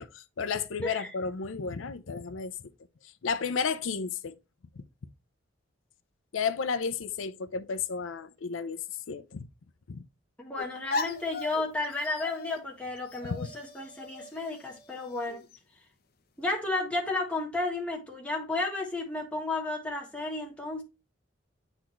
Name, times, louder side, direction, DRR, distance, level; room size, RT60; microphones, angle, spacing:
voice 1, 0.0-2.5 3.2-4.3 6.3-8.8 9.1-9.5 9.9-10.0 13.2-13.4, left 5 dB, 85° left, 0.5 m, -32 dB
voice 2, 10.4-15.5 16.4-20.8, left 2 dB, 5° left, 1.6 m, -33 dB
sound 1, 10.6-15.6, left 3 dB, 50° left, 0.8 m, -38 dB
8.8 x 4.0 x 3.0 m
head